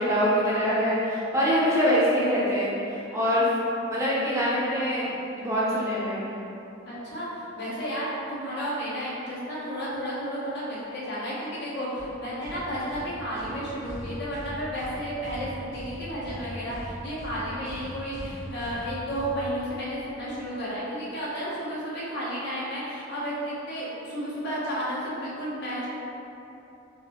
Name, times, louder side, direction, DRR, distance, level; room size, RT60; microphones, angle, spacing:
voice 1, 0.0-3.5 3.9-5.1 5.4-6.3, equal, 15° right, -8 dB, 0.5 m, -24 dB
voice 2, 6.8-25.9, equal, 55° left, -8 dB, 0.9 m, -32 dB
sound 1, 12.0-20.0, equal, 80° left, 1.3 m, -41 dB
3.9 x 2.5 x 2.9 m, 2.9 s
head